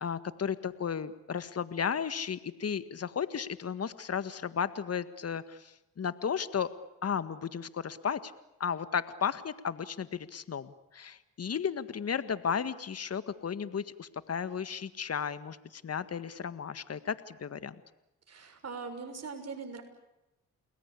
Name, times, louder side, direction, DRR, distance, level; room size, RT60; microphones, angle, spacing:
voice 1, 0.0-6.7 7.0-8.3 8.6-17.8, left 7 dB, 45° left, 13 dB, 1.8 m, -34 dB
voice 2, 18.3-19.8, right 4 dB, 50° right, 7 dB, 6.6 m, -41 dB
30.0 x 20.5 x 8.5 m, 0.95 s
supercardioid pair, 60°, 33 cm